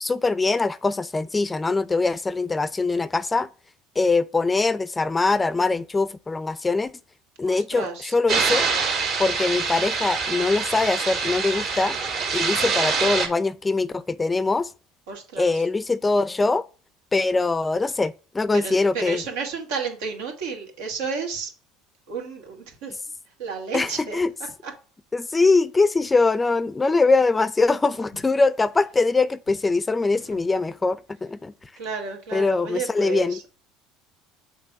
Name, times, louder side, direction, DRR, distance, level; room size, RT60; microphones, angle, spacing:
voice 1, 0.0-3.5 4.0-6.9 7.4-8.7 9.2-11.9 12.3-14.7 15.4-16.6 17.1-19.2 23.7-24.3 25.1-31.5 32.3-33.4, left 3 dB, 20° left, 0.5 m, -22 dB
voice 2, 7.4-8.1 15.1-15.6 18.5-21.5 22.1-23.0 23.4-24.2 24.6-24.7 31.8-33.4, right 5 dB, 80° right, 2.1 m, -32 dB
sound 1, 8.3-13.3, right 5 dB, 60° right, 2.3 m, -25 dB
6.6 x 3.4 x 5.8 m
hypercardioid pair, 80°, 0 cm